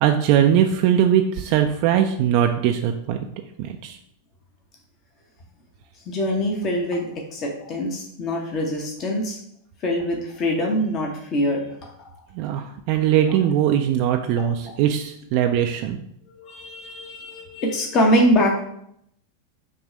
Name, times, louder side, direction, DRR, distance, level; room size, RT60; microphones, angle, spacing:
voice 1, 0.0-3.2 3.6-4.0 12.3-16.0, right 10 dB, 45° right, 4 dB, 0.4 m, -20 dB
voice 2, 6.1-9.4 9.8-11.7 12.0-12.1 16.3-18.7, equal, 35° left, 0 dB, 1.1 m, -23 dB
6.0 x 3.1 x 5.0 m, 0.73 s
figure-of-eight pair, 90°, 0 cm